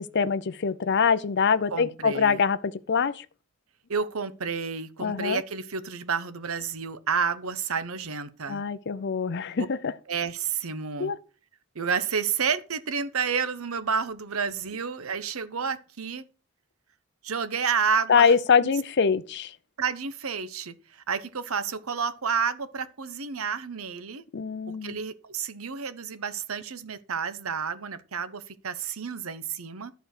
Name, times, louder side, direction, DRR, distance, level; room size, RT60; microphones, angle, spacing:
voice 1, 0.0-3.3 5.0-5.4 8.5-9.9 11.0-11.2 18.1-19.5 24.3-25.0, left 6 dB, 50° left, 0.5 m, -24 dB
voice 2, 1.7-2.4 3.9-8.6 10.1-11.1 11.7-16.2 17.2-18.3 18.6-18.7 19.8-24.2 24.8-29.9, right 6 dB, 70° right, 0.9 m, -30 dB
11.5 x 4.6 x 6.5 m
head